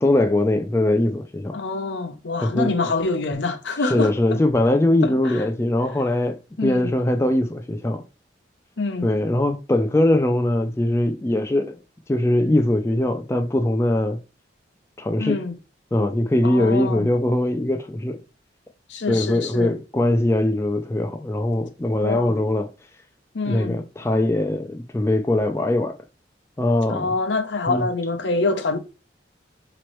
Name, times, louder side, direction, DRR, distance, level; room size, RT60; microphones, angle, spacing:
voice 1, 0.0-1.6 2.4-2.7 3.8-8.0 9.0-11.8 12.1-14.2 15.0-15.4 15.9-18.2 19.1-22.7 23.5-25.9 26.6-27.1 27.7-27.9, left 1 dB, 15° left, 0.3 m, -21 dB
voice 2, 1.5-4.4 5.0-5.4 6.6-6.9 8.8-9.1 15.2-15.5 16.4-17.1 18.9-19.7 22.0-22.4 23.3-23.8 26.9-28.8, left 3 dB, 80° left, 0.7 m, -26 dB
5.1 x 3.0 x 3.0 m
head